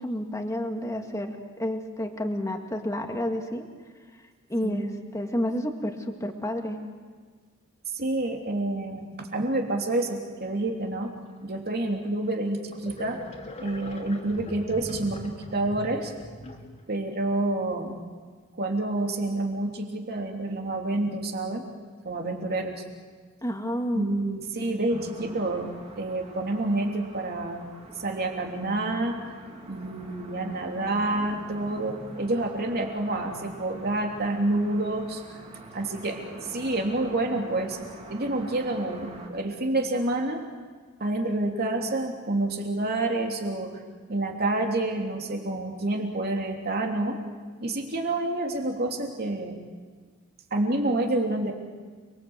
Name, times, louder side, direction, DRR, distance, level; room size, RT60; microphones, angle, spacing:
voice 1, 0.0-3.7 4.5-6.8 23.4-24.1, equal, 15° left, 3 dB, 2.0 m, -30 dB
voice 2, 7.9-11.1 11.4-13.2 13.6-16.1 16.9-18.0 18.6-21.6 22.0-22.8 23.9-29.2 29.7-35.2 35.7-36.2 36.5-37.8 38.1-40.4 41.0-43.7 44.1-47.2 47.6-49.6 50.5-51.5, right 2 dB, 45° right, 1 dB, 3.2 m, -28 dB
sound 1, 12.0-12.1 12.7-16.9, left 1 dB, 30° left, 2.8 m, -41 dB
sound 2, 24.9-39.3, right 1 dB, 30° right, 3.5 m, -44 dB
29.5 x 22.0 x 8.1 m, 1.5 s
head